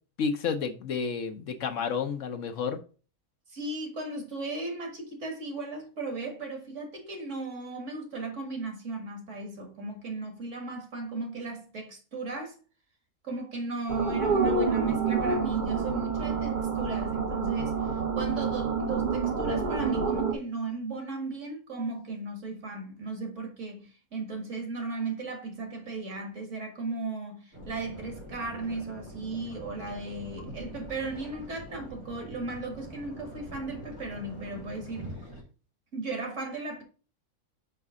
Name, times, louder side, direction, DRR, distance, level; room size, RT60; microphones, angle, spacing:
voice 1, 0.2-2.8, left 6 dB, 65° left, 1.0 m, -30 dB
voice 2, 3.5-12.6 13.2-35.2 35.9-36.8, right 3 dB, 55° right, 2.0 m, -36 dB
sound 1, 13.9-20.3, right 5 dB, 40° right, 0.9 m, -28 dB
sound 2, 27.5-35.4, equal, 90° right, 3.0 m, -44 dB
5.6 x 5.3 x 3.6 m
omnidirectional pair, 1.5 m